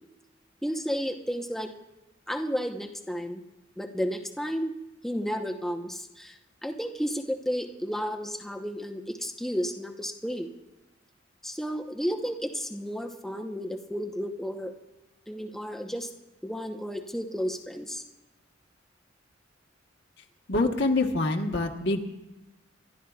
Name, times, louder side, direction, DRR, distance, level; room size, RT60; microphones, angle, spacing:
voice 1, 0.6-1.7 2.3-3.4 3.8-4.7 5.0-10.5 11.4-14.7 15.3-16.1 16.4-18.0, equal, ahead, 3 dB, 1.0 m, -32 dB
voice 2, 20.5-22.0, left 2 dB, 60° left, 2 dB, 1.3 m, -25 dB
29.0 x 12.5 x 2.4 m, 1.0 s
head